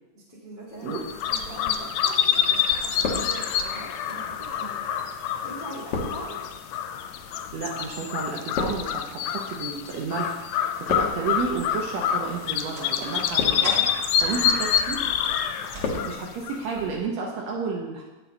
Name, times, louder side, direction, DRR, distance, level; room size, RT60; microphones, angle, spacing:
voice 1, 0.1-5.0 5.4-6.4, equal, 35° left, -5 dB, 0.7 m, -42 dB
sound 1, 0.9-16.9, left 8 dB, 80° left, 1.8 m, -27 dB
sound 2, 2.3-2.5 2.8-3.8 4.5-10.2 10.4-11.4 12.1-12.4 13.1-13.9 14.3-14.8 15.2-16.1 16.4-16.5, left 4 dB, 65° left, 1.7 m, -34 dB
voice 2, 7.5-10.4 10.8-13.9 14.2-15.0 16.0-18.0, right 5 dB, 75° right, -1 dB, 1.7 m, -31 dB
sound 3, 11.1-16.4, right 1 dB, 35° right, 1.3 m, -42 dB
8.7 x 5.7 x 4.1 m, 1.1 s
omnidirectional pair, 3.6 m